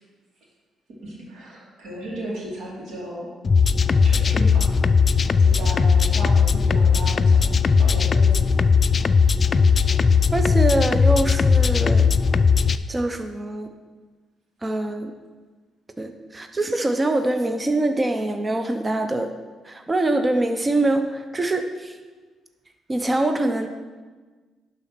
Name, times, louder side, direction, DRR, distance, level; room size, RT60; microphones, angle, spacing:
voice 1, 1.0-3.3 4.0-4.7 5.4-7.5 7.8-8.5, right 1 dB, 70° right, -4 dB, 2.8 m, -34 dB
sound 1, 3.4-12.8, left 5 dB, 40° left, 0.3 m, -18 dB
voice 2, 10.3-12.1 12.9-13.7 14.6-15.1 16.0-19.3 19.6-22.0 22.9-23.7, right 2 dB, 20° right, 7 dB, 0.6 m, -24 dB
11.0 x 4.1 x 5.8 m, 1.4 s
cardioid pair, 90°, 0 cm